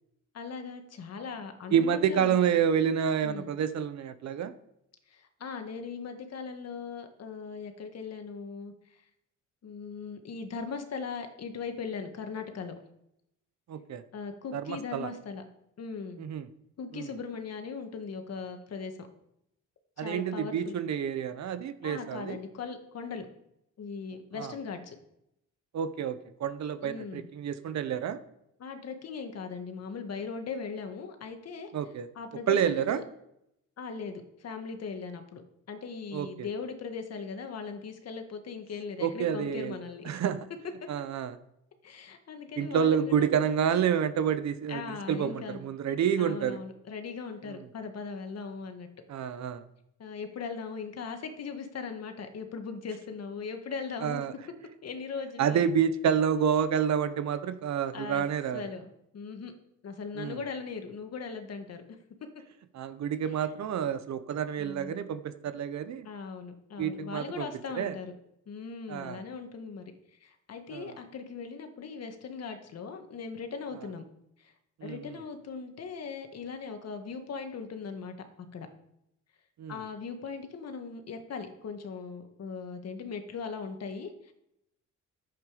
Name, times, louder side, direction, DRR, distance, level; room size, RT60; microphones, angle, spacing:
voice 1, 0.3-2.6 3.2-3.5 5.1-8.7 9.6-12.8 14.1-15.4 15.8-16.2 16.8-19.1 20.0-20.8 21.8-23.3 23.8-25.0 26.8-27.3 28.6-31.7 32.2-33.0 33.8-35.4 35.7-40.0 41.8-43.3 44.7-45.6 46.2-48.9 50.0-54.3 54.8-55.7 57.9-58.2 58.5-58.9 59.1-59.5 59.8-61.8 63.3-63.5 64.6-65.0 66.0-68.1 68.5-69.9 70.2-74.0 74.4-74.5 74.8-78.1 78.5-78.7 79.7-84.3, left 5 dB, 55° left, 6 dB, 1.7 m, -39 dB
voice 2, 1.7-4.5 13.7-14.0 14.5-15.1 16.2-16.5 16.9-17.0 20.0-22.4 24.4-24.5 25.7-28.2 31.7-32.1 32.5-33.0 36.1-36.3 39.0-39.7 40.0-40.4 40.9-41.4 42.6-46.6 49.1-49.6 54.0-54.3 55.4-58.6 60.2-60.4 62.7-66.1 66.8-67.5 67.8-67.9 68.9-69.2 70.7-70.9 74.8-75.0 79.6-79.7, right 8 dB, 65° right, 12 dB, 1.0 m, -28 dB
10.5 x 8.2 x 5.1 m, 0.80 s
cardioid pair, 90°, 30 cm